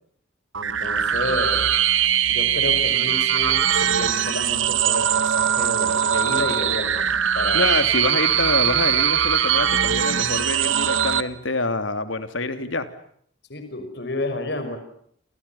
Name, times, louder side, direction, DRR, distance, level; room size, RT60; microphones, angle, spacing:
voice 1, 0.5-1.7 2.3-7.7 13.5-14.8, left 2 dB, 60° left, 8 dB, 5.8 m, -31 dB
sound 1, 0.5-11.2, right 9 dB, 85° right, 1.5 m, -21 dB
voice 2, 7.5-12.9, left 2 dB, 80° left, 10 dB, 3.2 m, -26 dB
29.5 x 29.0 x 5.8 m, 0.65 s
head